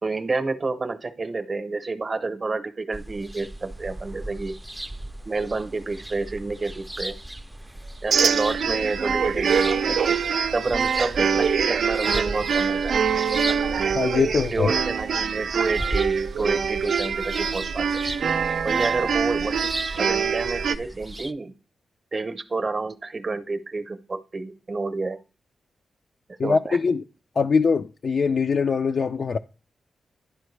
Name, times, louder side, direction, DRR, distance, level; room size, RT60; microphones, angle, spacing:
voice 1, 0.0-4.6 5.3-7.2 8.0-10.2 10.5-13.0 14.5-18.0 18.6-19.7 20.0-21.5 22.1-25.2 26.4-26.8, right 3 dB, 40° right, 0.7 m, -29 dB
sound 1, 2.9-21.3, right 1 dB, 10° right, 0.4 m, -36 dB
sound 2, 8.1-20.8, right 6 dB, 75° right, 0.4 m, -24 dB
voice 2, 13.9-14.7 26.4-27.0 27.4-29.4, left 5 dB, 60° left, 0.3 m, -22 dB
11.0 x 4.5 x 3.2 m
cardioid pair, 65°, 0 cm